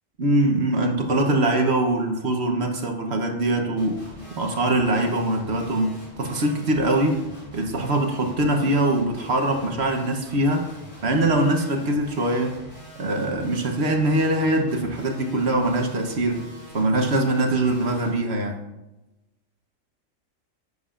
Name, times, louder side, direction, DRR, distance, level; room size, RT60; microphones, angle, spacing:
voice 1, 0.2-7.2 7.5-10.7 11.0-12.6 13.0-16.5 16.7-18.6, right 1 dB, 55° right, 4 dB, 1.3 m, -23 dB
sound 1, 3.8-18.1, equal, 25° left, 3.6 m, -44 dB
11.0 x 8.0 x 2.5 m, 1.0 s
omnidirectional pair, 1.3 m